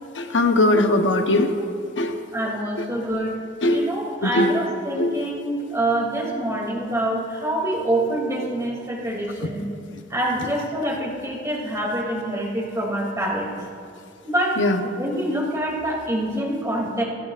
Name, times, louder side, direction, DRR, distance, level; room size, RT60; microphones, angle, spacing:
voice 1, 0.2-1.5 2.0-2.2 3.6-3.9 4.2-4.5 5.0-5.1 14.6-14.8, left 2 dB, 70° left, 5 dB, 1.0 m, -19 dB
voice 2, 2.3-3.4 3.7-9.7 10.1-13.5 14.2-14.6 15.0-17.0, right 1 dB, 15° right, -3 dB, 2.8 m, -26 dB
23.0 x 13.5 x 2.5 m, 2.3 s
head